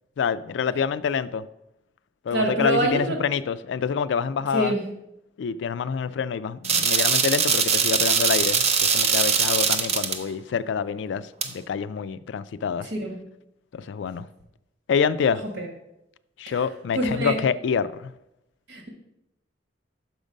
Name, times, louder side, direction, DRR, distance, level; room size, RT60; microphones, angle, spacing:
voice 1, 0.2-1.5 2.3-4.7 5.4-12.9 13.7-14.3 14.9-15.4 16.4-18.1, left 6 dB, 70° left, 0.3 m, -27 dB
voice 2, 2.3-3.2 4.5-4.8 12.8-13.2 15.6-15.7 16.5-16.6 16.9-17.4 18.7-18.9, right 1 dB, 65° right, 1.5 m, -25 dB
sound 1, 6.6-10.2 11.4-11.5, right 6 dB, 35° right, 0.5 m, -22 dB
6.1 x 5.1 x 5.2 m
head